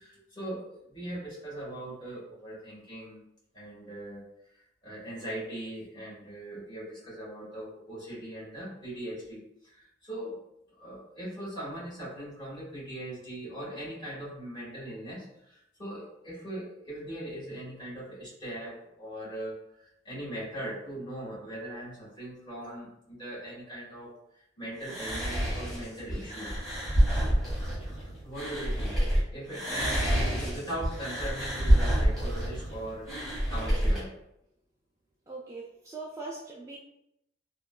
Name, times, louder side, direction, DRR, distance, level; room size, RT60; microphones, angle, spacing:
voice 1, 0.0-3.2 3.5-4.2 4.8-10.4 10.7-26.6 28.2-29.0 29.3-34.1, right 1 dB, 25° left, -8 dB, 1.5 m, -40 dB
sound 1, 24.8-29.2 29.5-34.0, equal, ahead, 1.4 m, -27 dB
voice 2, 29.7-30.1 35.3-36.8, right 3 dB, 15° right, -4 dB, 0.3 m, -41 dB
3.6 x 2.2 x 2.2 m, 0.80 s
head